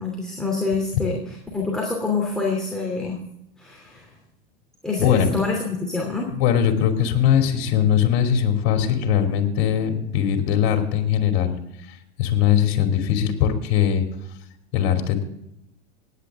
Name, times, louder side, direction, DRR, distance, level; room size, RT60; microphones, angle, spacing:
voice 1, 0.0-3.2 3.6-4.1 4.8-6.3, left 3 dB, ahead, -2 dB, 2.9 m, -26 dB
voice 2, 5.0-5.4 6.3-11.6 12.2-14.0 14.7-15.2, left 9 dB, 60° left, 4 dB, 2.8 m, -20 dB
17.0 x 10.0 x 3.6 m, 0.79 s
hypercardioid pair, 110°, 32 cm